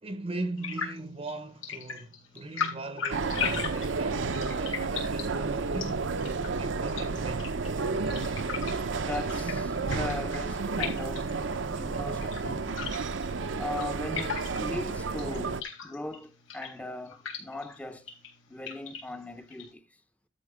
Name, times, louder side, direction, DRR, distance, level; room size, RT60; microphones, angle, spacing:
voice 1, 0.0-6.1 6.6-7.5, right 2 dB, 30° right, 0.7 m, -39 dB
sound 1, 0.6-19.7, left 6 dB, 85° left, 4.1 m, -40 dB
sound 2, 3.1-15.6, right 4 dB, 65° right, 0.7 m, -31 dB
voice 2, 9.0-11.4 11.7-12.7 13.6-18.1 18.5-19.9, left 2 dB, 5° left, 0.7 m, -39 dB
12.5 x 4.5 x 6.1 m
head